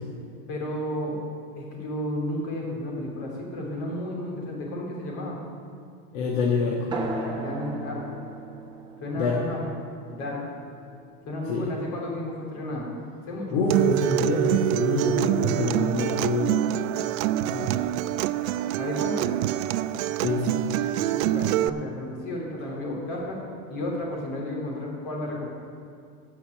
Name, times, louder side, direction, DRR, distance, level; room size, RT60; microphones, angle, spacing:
voice 1, 0.5-1.2 1.5-5.3 7.3-8.0 9.0-9.6 10.1-10.4 11.2-12.9 13.3-13.6 18.8-19.3 21.1-23.4 23.7-25.5, left 1 dB, 35° left, -2 dB, 3.1 m, -32 dB
voice 2, 6.1-6.9 9.1-9.6 11.5-11.7 13.5-16.5 17.5-17.7 20.2-20.6, left 3 dB, 55° left, -2 dB, 1.6 m, -26 dB
sound 1, 6.9-11.9, right 2 dB, 10° right, 1.0 m, -37 dB
Acoustic guitar, 13.7-21.7, right 13 dB, 60° right, 0.5 m, -25 dB
13.5 x 5.7 x 8.8 m, 2.4 s
supercardioid pair, 160°, 46 cm